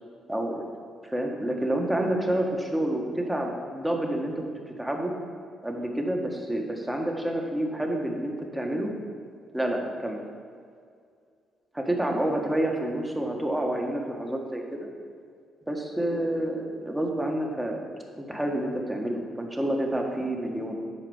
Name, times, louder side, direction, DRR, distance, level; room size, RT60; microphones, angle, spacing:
voice 1, 0.3-0.6 1.0-4.5 4.8-5.1 5.6-8.9 9.5-10.2 11.7-14.9 15.7-17.8 18.2-20.8, right 1 dB, 10° right, 1 dB, 1.6 m, -28 dB
9.9 x 4.9 x 7.2 m, 2.2 s
cardioid pair, 90°, 0 cm